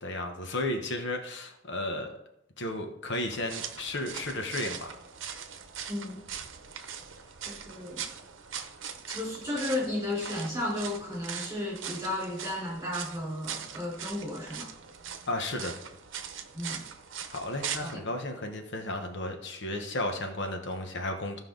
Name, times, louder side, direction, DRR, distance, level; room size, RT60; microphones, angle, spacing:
voice 1, 0.0-2.1 2.6-4.9 15.3-15.8 17.3-21.4, left 1 dB, 60° left, 4 dB, 1.1 m, -33 dB
Footsteps Dry Leaves D, 3.3-18.0, right 7 dB, 65° right, 0.9 m, -41 dB
voice 2, 5.9-6.2 7.4-8.0 9.1-14.7 16.5-16.8 17.8-18.0, left 1 dB, 15° right, -4 dB, 4.2 m, -34 dB
15.0 x 5.5 x 3.9 m, 0.82 s
head